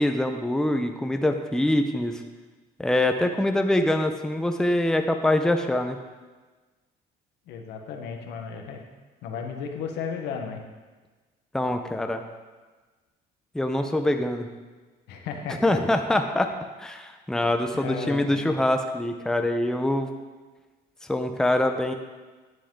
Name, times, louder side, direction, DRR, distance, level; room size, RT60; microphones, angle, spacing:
voice 1, 0.0-2.2 2.8-6.0 11.5-12.2 13.5-14.5 15.6-16.5 16.8-20.1 21.1-21.9, left 1 dB, 5° left, 5 dB, 0.7 m, -24 dB
voice 2, 7.5-8.9 9.2-10.6 15.1-15.8 17.7-18.5, left 6 dB, 85° left, 3 dB, 1.3 m, -34 dB
10.0 x 7.6 x 3.8 m, 1.3 s
cardioid pair, 110°, 17 cm